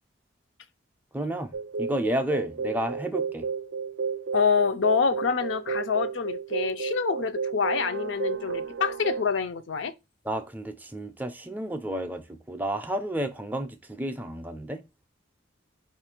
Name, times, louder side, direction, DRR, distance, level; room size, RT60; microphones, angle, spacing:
voice 1, 1.1-1.5 1.8-3.4 10.3-14.8, right 1 dB, 10° right, 0.4 m, -31 dB
sound 1, 1.5-9.2, right 5 dB, 70° right, 0.4 m, -32 dB
voice 2, 4.3-9.9, left 5 dB, 70° left, 0.4 m, -26 dB
5.0 x 2.4 x 4.3 m
head